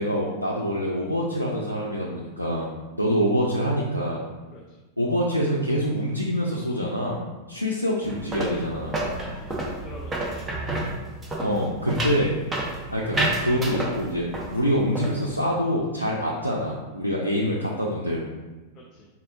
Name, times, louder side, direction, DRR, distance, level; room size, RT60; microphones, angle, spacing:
voice 1, 0.0-4.2 5.0-7.2 7.5-9.0 11.4-12.4 12.9-14.3 14.5-18.3, equal, 85° left, -3 dB, 0.4 m, -25 dB
sound 1, 8.0-14.5 14.8-15.3, right 2 dB, 20° right, 0.8 m, -30 dB
voice 2, 9.2-10.5 12.7-12.8 18.7-19.1, left 2 dB, 25° left, -2 dB, 0.5 m, -45 dB
4.3 x 3.6 x 2.4 m, 1.2 s
figure-of-eight pair, 90°, 0 cm